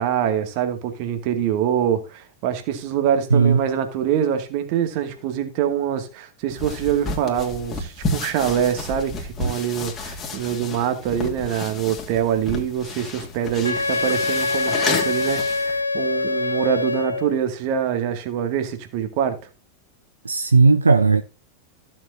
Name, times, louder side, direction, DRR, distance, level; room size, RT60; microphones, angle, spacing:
voice 1, 0.0-19.4, right 9 dB, 45° right, 2.1 m, -24 dB
sound 1, 6.5-15.8, left 3 dB, 25° left, 2.5 m, -31 dB
Wind instrument woodwind instrument, 13.6-17.4, left 3 dB, 80° left, 0.4 m, -24 dB
voice 2, 20.2-21.2, right 4 dB, 80° right, 0.6 m, -15 dB
15.0 x 7.4 x 2.7 m
figure-of-eight pair, 90°, 0 cm